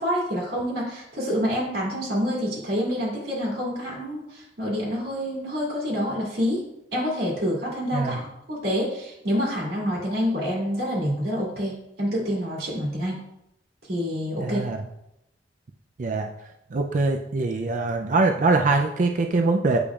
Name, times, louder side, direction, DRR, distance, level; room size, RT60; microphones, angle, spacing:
voice 1, 0.0-6.6 6.9-13.2 13.9-14.6, equal, 60° right, -5 dB, 2.3 m, -27 dB
voice 2, 14.4-14.8 16.0-16.3 16.7-19.8, right 3 dB, 45° right, 3 dB, 0.4 m, -23 dB
8.5 x 5.1 x 2.4 m, 0.83 s
head